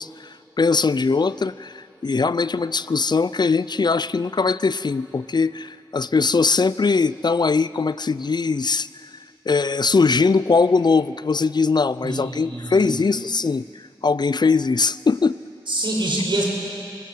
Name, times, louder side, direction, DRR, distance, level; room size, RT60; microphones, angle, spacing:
voice 1, 0.0-8.9 9.5-13.6 14.0-15.4, left 4 dB, 60° left, 17 dB, 0.4 m, -21 dB
voice 2, 12.0-12.9 15.7-16.4, right 1 dB, 70° right, -2 dB, 5.7 m, -25 dB
28.0 x 19.5 x 7.6 m, 2.7 s
wide cardioid pair, 70°, 9 cm